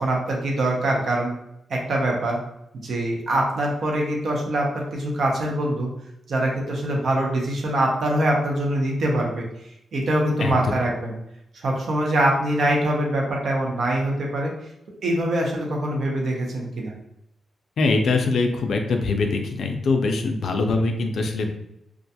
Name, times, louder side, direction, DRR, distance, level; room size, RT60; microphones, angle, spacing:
voice 1, 0.0-1.3 1.7-2.4 2.7-5.9 6.3-9.4 9.9-11.1 11.5-14.5 15.0-16.9, right 1 dB, 65° right, 0 dB, 0.6 m, -23 dB
voice 2, 10.4-10.7 17.8-21.6, left 3 dB, 70° left, 4 dB, 0.3 m, -23 dB
2.4 x 2.2 x 2.7 m, 0.79 s
wide cardioid pair, 145°, 0 cm